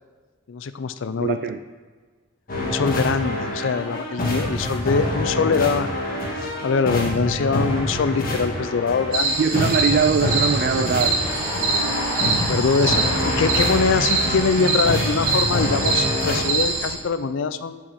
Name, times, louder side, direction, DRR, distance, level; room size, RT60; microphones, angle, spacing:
voice 1, 0.5-1.4 2.6-5.9 6.4-9.4 12.3-17.8, left 5 dB, 65° left, 12 dB, 0.4 m, -23 dB
voice 2, 1.2-1.6 9.4-11.2 11.6-11.9, right 5 dB, 50° right, 7 dB, 0.3 m, -22 dB
sound 1, 2.5-16.4, left 1 dB, 45° left, 1.7 m, -26 dB
sound 2, 9.1-16.9, right 3 dB, 75° right, 1.5 m, -24 dB
sound 3, 11.2-13.6, left 1 dB, 20° left, 1.3 m, -33 dB
7.3 x 4.8 x 6.8 m, 1.5 s
head